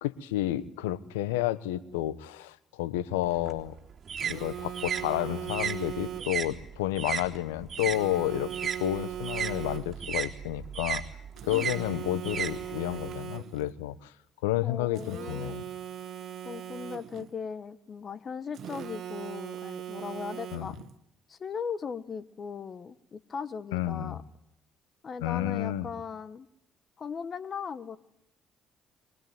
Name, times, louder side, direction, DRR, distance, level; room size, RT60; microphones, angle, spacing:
voice 1, 0.0-3.7 4.2-8.5 8.8-11.0 11.4-14.1 14.4-15.6 20.5-20.7 23.7-24.2 25.2-25.9, left 14 dB, 85° left, 14 dB, 1.0 m, -31 dB
sound 1, 3.2-8.0 8.3-13.1, right 7 dB, 45° right, 3.7 m, -35 dB
Telephone, 4.2-6.5 7.8-10.1 11.4-13.7 15.0-17.3 18.5-20.9, right 11 dB, 60° right, 1.6 m, -39 dB
voice 2, 14.6-15.6 16.4-20.8 21.3-24.2 25.0-26.5 27.0-28.0, left 6 dB, 45° left, 14 dB, 1.4 m, -38 dB
23.5 x 21.0 x 9.4 m, 0.76 s
hypercardioid pair, 55°, 0 cm